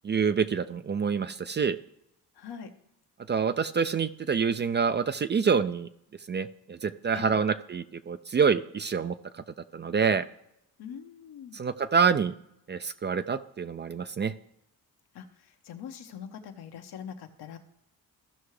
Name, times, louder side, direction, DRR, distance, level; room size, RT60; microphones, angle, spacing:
voice 1, 0.0-1.8 3.3-5.9 6.3-9.1 9.7-10.3 11.5-12.3 12.7-14.3, right 6 dB, 30° right, 12 dB, 0.4 m, -26 dB
voice 2, 2.3-2.7 7.1-7.4 10.8-11.6 15.1-17.6, left 7 dB, 80° left, 6 dB, 1.1 m, -43 dB
15.0 x 5.7 x 3.2 m, 0.78 s
cardioid pair, 90°, 38 cm